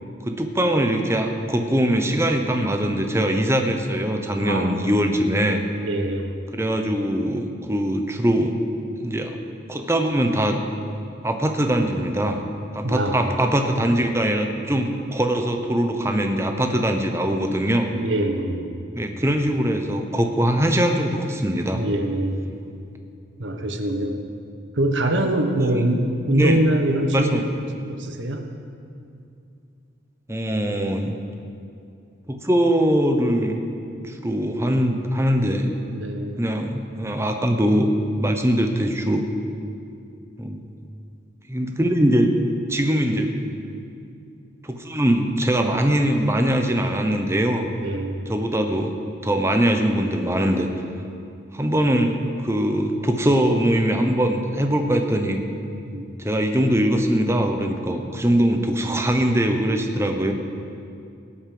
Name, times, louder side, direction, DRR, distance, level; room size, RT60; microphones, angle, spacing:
voice 1, 0.2-5.6 6.5-8.6 9.0-9.4 9.7-10.6 11.2-12.4 12.7-17.9 18.9-21.8 25.7-25.8 26.3-26.6 27.1-27.4 30.3-31.2 32.3-33.6 34.0-35.8 36.4-39.3 40.4-40.6 41.5-42.3 42.7-43.3 44.6-47.7 48.3-48.9 49.2-50.7 51.5-55.4 56.2-60.3, right 1 dB, 15° right, 5 dB, 1.0 m, -22 dB
voice 2, 4.4-4.9 5.7-6.4 12.8-13.3 17.9-18.7 21.7-22.4 23.4-24.2 24.7-27.5 27.9-28.5 35.9-36.5 47.8-48.3 55.9-56.1, right 1 dB, 65° right, 5 dB, 1.3 m, -24 dB
17.5 x 8.6 x 7.7 m, 2.5 s
head